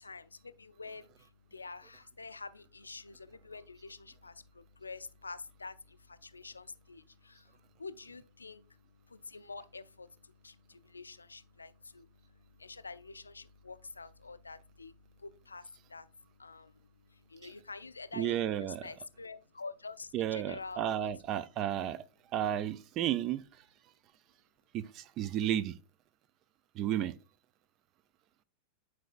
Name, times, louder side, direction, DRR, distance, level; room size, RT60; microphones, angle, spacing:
voice 1, 0.0-16.1 16.4-21.1, left 4 dB, 80° left, 0.4 m, -48 dB
voice 2, 18.2-18.9 20.1-22.0 22.3-23.4 24.7-25.8 26.8-27.1, right 11 dB, 35° right, 0.4 m, -32 dB
9.1 x 4.7 x 2.5 m
figure-of-eight pair, 90°, 0 cm